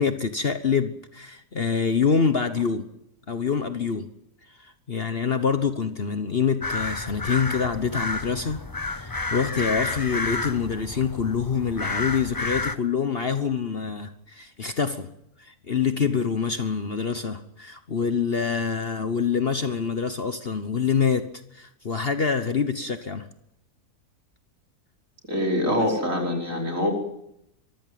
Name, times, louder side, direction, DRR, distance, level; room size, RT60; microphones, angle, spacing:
voice 1, 0.0-2.9 3.3-4.1 4.6-15.1 15.4-23.3 25.7-26.0, left 6 dB, 40° left, 9 dB, 1.2 m, -26 dB
sound 1, 6.6-12.8, left 3 dB, 20° left, 0.5 m, -30 dB
voice 2, 25.3-26.9, left 1 dB, 55° right, 1 dB, 5.6 m, -24 dB
24.0 x 15.0 x 9.3 m, 0.80 s
omnidirectional pair, 1.6 m